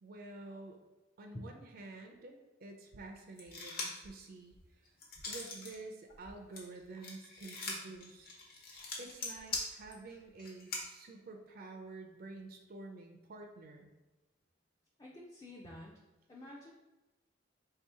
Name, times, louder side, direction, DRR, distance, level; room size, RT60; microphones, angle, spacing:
voice 1, 0.0-0.8 1.2-4.5 5.3-8.3 9.0-13.9, right 3 dB, 50° right, 3 dB, 0.4 m, -49 dB
sound 1, 3.4-4.1 4.5-5.8 6.1-10.8, left 3 dB, 50° left, 0.9 m, -42 dB
voice 2, 15.0-15.9 16.3-16.7, left 1 dB, 20° left, -3 dB, 0.4 m, -48 dB
3.3 x 2.8 x 4.6 m, 1.1 s
head